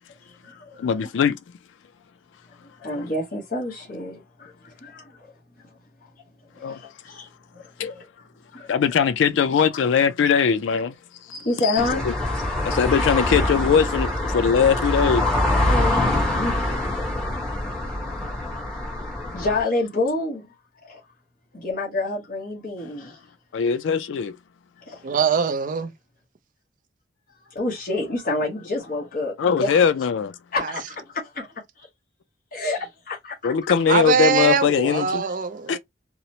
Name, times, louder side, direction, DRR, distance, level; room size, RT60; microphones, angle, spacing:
voice 1, 0.2-0.9 2.8-5.3 6.0-6.1 6.5-8.0 8.5-8.7 11.3-12.1 15.7-16.8 17.9-18.0 18.2-18.4 18.7-19.0 19.3-20.5 20.8-21.0 21.5-23.2 24.9-25.0 27.5-29.7 30.5-31.5 31.8-31.9 32.5-33.5, left 2 dB, 45° left, 0.9 m, -29 dB
voice 2, 0.8-1.4 3.0-3.1 6.6-6.8 7.8-7.9 8.7-10.9 11.6-11.7 12.1-12.2 12.6-15.2 19.3-19.4 23.5-24.3 29.4-30.3 33.4-35.2 35.7-35.8, left 6 dB, 80° left, 0.3 m, -21 dB
sound 1, 11.8-19.6, left 1 dB, 5° left, 0.9 m, -24 dB
voice 3, 25.0-25.9 30.6-30.8 33.7-35.8, right 6 dB, 45° right, 0.4 m, -22 dB
2.9 x 2.0 x 2.7 m
head